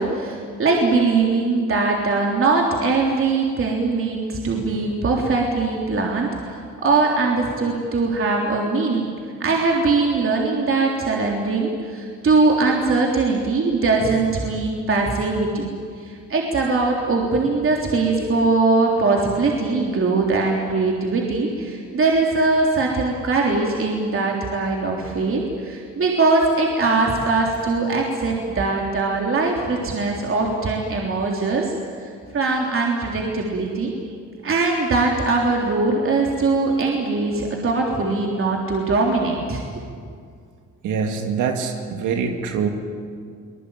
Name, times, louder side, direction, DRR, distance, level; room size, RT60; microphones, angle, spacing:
voice 1, 0.0-9.1 9.4-15.7 16.0-31.7 32.0-33.9 34.4-39.6, right 3 dB, 45° right, -1 dB, 3.5 m, -21 dB
voice 2, 40.8-42.7, right 6 dB, 90° right, 4 dB, 2.3 m, -24 dB
24.5 x 20.0 x 9.1 m, 2.2 s
cardioid pair, 90°, 30 cm